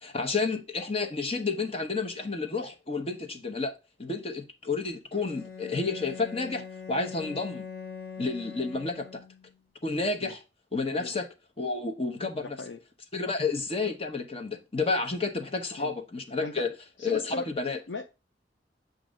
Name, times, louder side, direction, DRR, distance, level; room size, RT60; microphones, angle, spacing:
voice 1, 0.0-7.7 8.2-9.1 9.8-10.4 10.7-11.3 11.6-12.6 13.1-16.7 17.0-17.8, left 3 dB, 35° left, 0.8 m, -30 dB
Bowed string instrument, 5.1-9.6, left 5 dB, 50° left, 1.2 m, -42 dB
voice 2, 12.4-12.8 15.8-15.9 16.4-16.7 17.0-17.4 17.9-18.0, left 3 dB, 80° left, 0.6 m, -38 dB
7.5 x 2.6 x 5.0 m
head